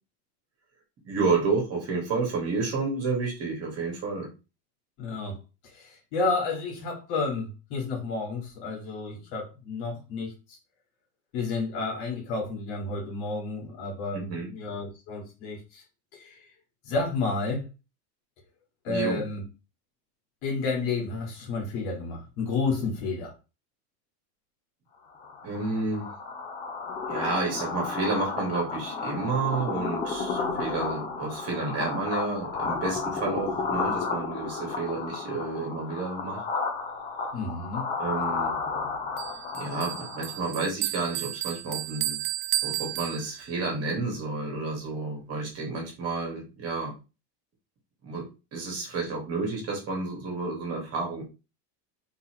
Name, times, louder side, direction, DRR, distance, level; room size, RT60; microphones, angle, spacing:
voice 1, 1.0-4.3 14.1-14.5 18.9-19.2 25.4-26.1 27.1-36.4 38.0-38.6 39.5-42.2 42.6-46.9 48.0-51.2, right 3 dB, 30° right, -1 dB, 1.8 m, -30 dB
voice 2, 5.0-5.4 5.6-10.3 11.3-15.8 16.1-16.4 16.8-17.6 18.8-19.4 20.4-23.3 37.3-37.8, left 3 dB, 65° left, 0 dB, 2.3 m, -31 dB
sound 1, 25.2-40.5, left 4 dB, 15° left, 0.3 m, -32 dB
Bell, 39.2-43.7, right 16 dB, 70° right, 0.6 m, -33 dB
4.1 x 3.9 x 3.0 m, 0.30 s
supercardioid pair, 140°, 48 cm